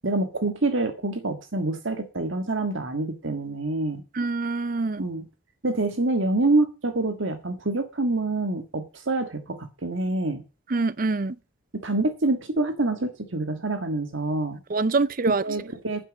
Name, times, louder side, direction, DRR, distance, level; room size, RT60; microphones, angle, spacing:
voice 1, 0.0-4.0 5.0-5.2 5.6-10.4 11.7-14.6 15.3-16.0, right 2 dB, 65° right, 1.6 m, -26 dB
voice 2, 4.2-5.0 10.7-11.3 14.7-15.4, right 3 dB, 40° right, 0.5 m, -25 dB
10.0 x 7.7 x 7.2 m
head